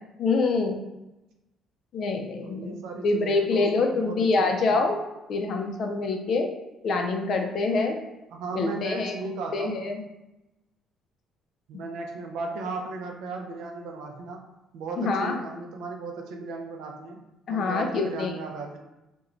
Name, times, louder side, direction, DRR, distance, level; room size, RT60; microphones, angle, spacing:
voice 1, 0.2-0.8 1.9-2.7 3.0-5.0 5.3-6.5 6.8-8.0 8.6-9.1 9.5-10.0 15.0-15.4 17.5-18.3, left 3 dB, 50° left, 3 dB, 0.4 m, -25 dB
voice 2, 2.4-4.9 8.3-9.9 11.7-14.5 14.7-17.2 17.5-18.8, right 3 dB, 85° right, 2 dB, 0.4 m, -36 dB
2.9 x 2.2 x 2.5 m, 0.96 s
cardioid pair, 135°, 0 cm